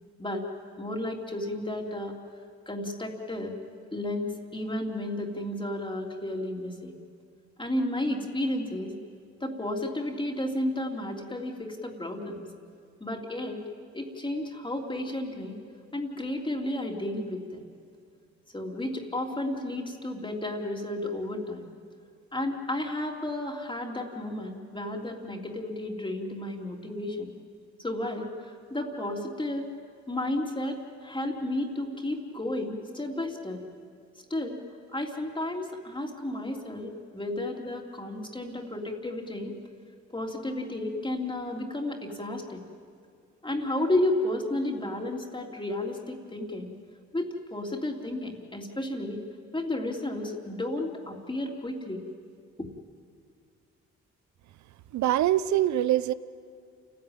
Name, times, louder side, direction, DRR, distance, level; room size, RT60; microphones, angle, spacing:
voice 1, 0.8-2.1 2.6-3.5 3.9-6.9 7.6-8.9 9.4-12.5 13.0-13.6 13.9-15.5 15.9-17.6 18.5-21.7 22.3-27.3 27.8-29.7 30.1-33.6 34.3-34.6 34.9-39.5 40.1-42.6 43.4-46.7 47.1-49.2 49.5-52.0, left 1 dB, 15° left, 1 dB, 3.2 m, -32 dB
voice 2, 54.9-56.1, right 13 dB, 75° right, 17 dB, 0.8 m, -24 dB
28.5 x 14.5 x 9.0 m, 2.3 s
supercardioid pair, 65°, 29 cm